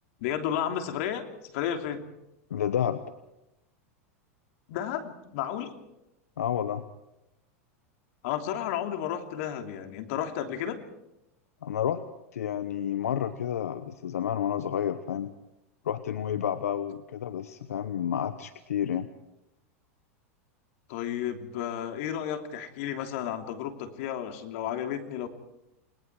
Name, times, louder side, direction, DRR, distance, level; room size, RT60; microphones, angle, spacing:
voice 1, 0.2-1.3 1.5-2.0 4.7-5.7 8.2-10.8 20.9-25.3, left 10 dB, 65° left, 5 dB, 3.1 m, -32 dB
voice 2, 2.5-3.0 6.4-6.8 11.6-12.0 12.3-15.3 15.8-19.1, left 9 dB, 90° left, 11 dB, 1.1 m, -30 dB
29.5 x 20.0 x 4.8 m, 0.89 s
hypercardioid pair, 115°, 8 cm